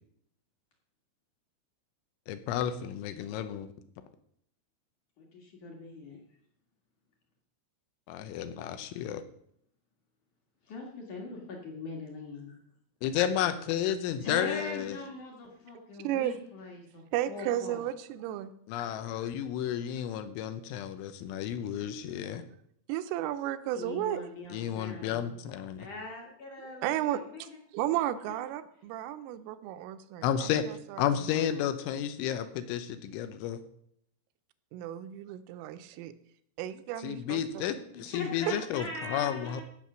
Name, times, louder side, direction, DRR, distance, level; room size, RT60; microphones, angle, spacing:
voice 1, 2.3-3.7 8.1-9.2 13.0-15.0 18.7-22.4 24.5-25.9 30.2-30.7 31.0-33.6 37.0-39.6, left 10 dB, 80° left, 10 dB, 3.1 m, -32 dB
voice 2, 5.2-6.2 10.7-12.6 14.2-17.8 23.7-25.4 25.8-27.6 28.3-28.4 38.1-39.6, left 3 dB, 55° left, 0 dB, 2.3 m, -41 dB
voice 3, 16.0-16.4 17.1-18.5 22.9-24.2 26.7-31.0 34.7-36.1 36.6-37.7, right 12 dB, 85° right, 10 dB, 3.3 m, -34 dB
16.0 x 6.3 x 6.2 m, 0.68 s
omnidirectional pair, 5.8 m